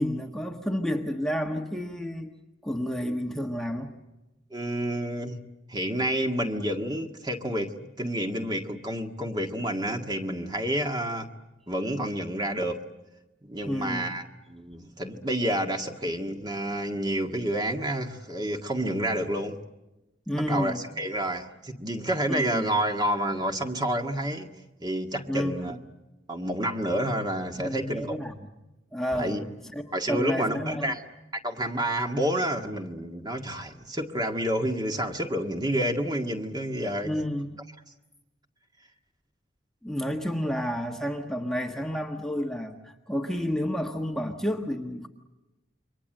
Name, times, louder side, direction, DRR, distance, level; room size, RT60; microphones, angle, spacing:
voice 1, 0.0-2.3 2.6-3.9 13.6-14.1 20.3-20.8 22.3-22.6 25.3-25.7 27.6-28.4 28.9-30.9 37.0-37.6 39.8-45.1, equal, 5° left, 1.4 m, -30 dB
voice 2, 4.5-5.4 5.7-11.3 11.7-12.8 13.4-19.6 20.3-24.5 24.8-25.8 26.3-28.2 29.2-29.4 29.9-31.0 31.4-37.1, right 1 dB, 20° right, 1.8 m, -29 dB
28.5 x 24.0 x 7.8 m
head